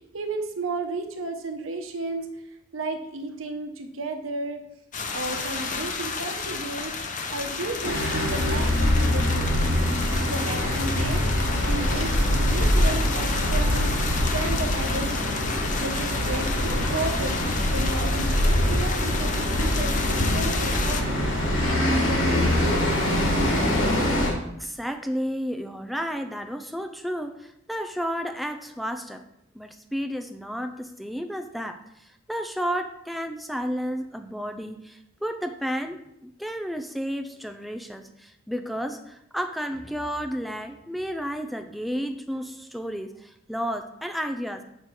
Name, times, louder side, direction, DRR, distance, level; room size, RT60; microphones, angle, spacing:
voice 1, 0.0-2.3 2.7-4.6 5.1-11.3 11.6-13.9 14.3-17.4 17.7-21.7, right 2 dB, 75° right, 6 dB, 1.0 m, -33 dB
sound 1, 4.9-21.0, left 5 dB, 40° left, 0.8 m, -32 dB
sound 2, 7.8-24.3, left 1 dB, 85° left, 2.6 m, -24 dB
voice 2, 24.6-29.2 29.5-44.6, equal, ahead, 7 dB, 0.4 m, -32 dB
6.6 x 5.9 x 4.7 m, 0.81 s
head